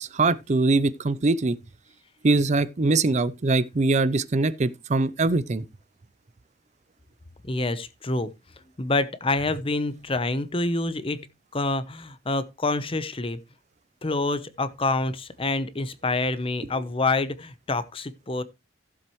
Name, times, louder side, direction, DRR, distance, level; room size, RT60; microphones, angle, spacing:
voice 1, 0.0-1.6 2.2-5.6, right 3 dB, 35° right, 0.5 m, -22 dB
voice 2, 7.4-8.3 8.8-11.3 11.5-13.4 14.0-18.4, left 2 dB, 30° left, 0.8 m, -27 dB
15.5 x 7.5 x 3.1 m
head